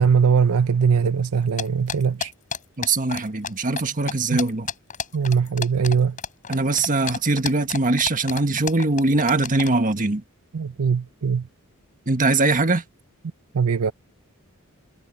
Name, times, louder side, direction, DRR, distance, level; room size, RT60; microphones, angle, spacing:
voice 1, 0.0-2.3 4.3-4.4 5.1-6.2 10.5-11.5 13.5-13.9, right 6 dB, 80° right, 0.6 m, -21 dB
sound 1, 1.6-3.5 3.8-3.9 4.1-9.7, left 6 dB, 35° left, 6.4 m, -30 dB
voice 2, 2.8-4.7 6.5-10.2 12.1-12.8, right 3 dB, 40° right, 1.6 m, -21 dB
head